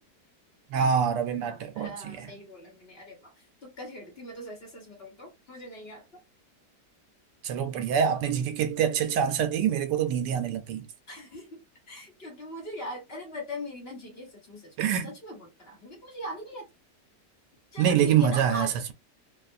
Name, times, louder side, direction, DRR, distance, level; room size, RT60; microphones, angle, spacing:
voice 1, 0.7-2.3 7.4-10.9 14.8-15.1 17.8-18.9, right 8 dB, 80° right, 1.3 m, -25 dB
voice 2, 1.3-3.3 3.6-6.1 11.1-11.6 11.9-16.6 17.7-18.7, equal, 40° left, 1.2 m, -41 dB
3.0 x 2.4 x 2.5 m
omnidirectional pair, 1.9 m